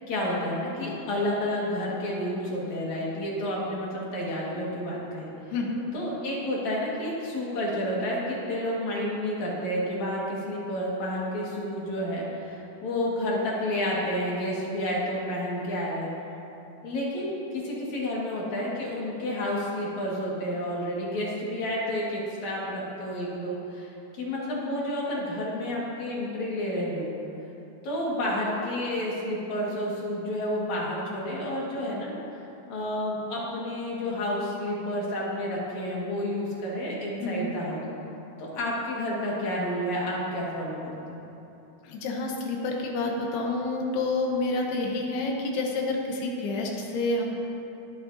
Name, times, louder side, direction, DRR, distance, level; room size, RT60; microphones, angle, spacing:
voice 1, 0.1-5.3 5.9-16.1 16.8-27.1 27.8-32.1 32.7-37.8 38.4-41.2, left 1 dB, 55° left, -5 dB, 2.8 m, -30 dB
voice 2, 5.5-5.9 37.2-37.5 41.8-47.2, left 2 dB, 85° left, 0 dB, 3.2 m, -29 dB
22.0 x 8.6 x 2.7 m, 2.9 s
omnidirectional pair, 4.5 m